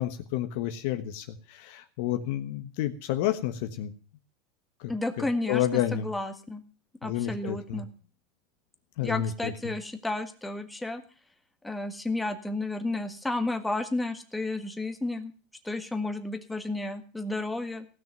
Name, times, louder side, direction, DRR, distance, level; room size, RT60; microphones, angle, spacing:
voice 1, 0.0-3.9 4.8-4.9 5.2-6.1 7.0-7.8 9.0-9.7, left 12 dB, 65° left, 7 dB, 1.2 m, -30 dB
voice 2, 4.9-5.6 5.9-6.6 7.0-7.9 9.0-11.0 11.6-15.3 15.6-17.9, left 2 dB, 5° left, 6 dB, 1.7 m, -32 dB
16.5 x 6.3 x 9.2 m, 0.40 s
supercardioid pair, 135°, 0 cm